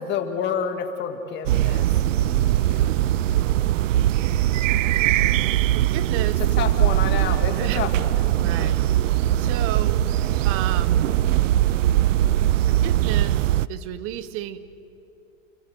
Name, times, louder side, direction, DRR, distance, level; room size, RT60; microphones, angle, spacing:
voice 1, 0.0-3.0 6.6-8.7, left 7 dB, 25° left, 6 dB, 2.1 m, -30 dB
sound 1, 1.5-13.7, right 13 dB, 70° right, 0.6 m, -21 dB
voice 2, 3.3-3.8 5.7-6.4 7.6-7.8 8.4-8.8 9.4-10.0 10.4-11.1 12.7-13.4 13.7-14.6, right 12 dB, 35° right, 14 dB, 1.1 m, -33 dB
29.5 x 15.0 x 8.0 m, 2.8 s
hypercardioid pair, 135°, 40 cm